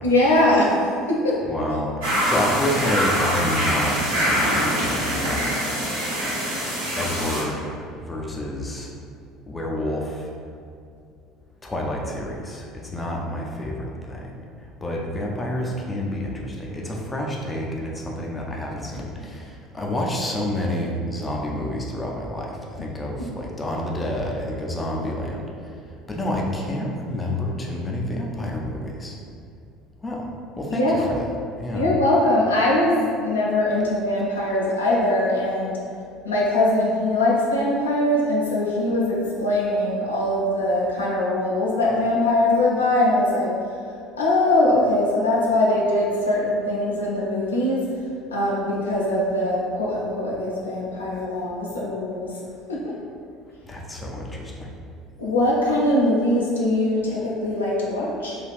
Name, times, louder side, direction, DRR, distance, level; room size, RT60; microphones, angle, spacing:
voice 1, 0.0-1.3 30.8-31.0 31.7-35.8 36.2-43.5 44.2-47.8 48.3-52.3 52.7-52.9 55.2-58.4, left 1 dB, 80° left, -4 dB, 0.4 m, -21 dB
voice 2, 1.4-5.4 7.0-8.9 9.5-10.3 11.6-29.2 30.0-30.3 30.6-31.3 31.6-31.9 53.6-54.7, left 1 dB, 20° left, -1 dB, 0.4 m, -29 dB
sound 1, 2.0-7.4, equal, 75° right, 0.9 m, -24 dB
3.3 x 2.3 x 2.4 m, 2.4 s
figure-of-eight pair, 65°, 0 cm